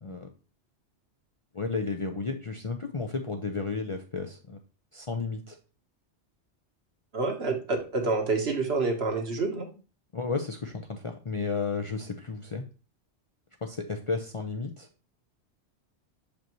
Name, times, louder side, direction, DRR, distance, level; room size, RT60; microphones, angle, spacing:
voice 1, 1.5-4.6 4.9-5.6 10.1-12.6 13.6-14.9, left 4 dB, 40° left, 4 dB, 0.5 m, -33 dB
voice 2, 7.1-9.7, right 3 dB, 65° right, 4 dB, 1.4 m, -28 dB
6.7 x 5.2 x 3.0 m, 0.34 s
omnidirectional pair, 1.2 m